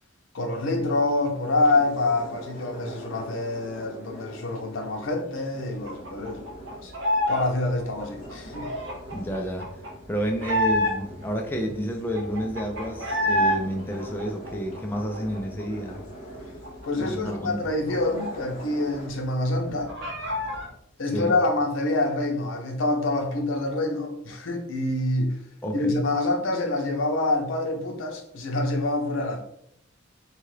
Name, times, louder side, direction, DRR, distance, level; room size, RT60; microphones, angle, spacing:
voice 1, 0.3-6.4 6.8-6.9 7.3-8.7 16.8-19.9 21.0-25.4 25.7-29.4, left 2 dB, 75° left, 0.6 m, -26 dB
sound 1, 0.5-19.1, equal, 35° left, 0.9 m, -44 dB
sound 2, 5.8-7.5 7.7-11.3 11.7-11.8 11.9-13.6 13.9-15.6 15.9-16.1 16.4-18.8 19.1-19.2 19.5-20.7, left 1 dB, 60° right, 0.7 m, -28 dB
voice 2, 9.1-9.7 10.1-16.0 17.0-17.6 21.1-21.3 25.6-26.0, equal, 10° left, 0.3 m, -30 dB
2.8 x 2.4 x 3.1 m
head